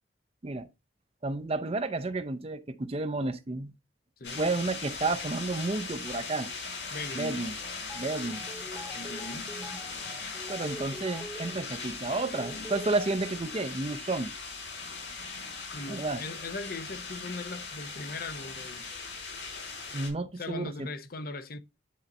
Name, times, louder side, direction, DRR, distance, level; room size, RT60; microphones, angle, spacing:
voice 1, 1.2-3.7 4.4-6.5 7.1-7.6 7.9-8.5 10.5-14.4 15.9-16.2 19.9-20.9, right 3 dB, 35° right, 0.6 m, -31 dB
sound 1, 4.2-20.1, left 4 dB, 80° left, 4.8 m, -39 dB
voice 2, 4.2-4.5 6.9-7.5 8.9-9.5 15.7-18.8 20.4-21.6, left 2 dB, 55° left, 0.8 m, -39 dB
sound 2, 7.8-13.5, equal, 5° left, 1.1 m, -45 dB
10.5 x 4.0 x 4.2 m
head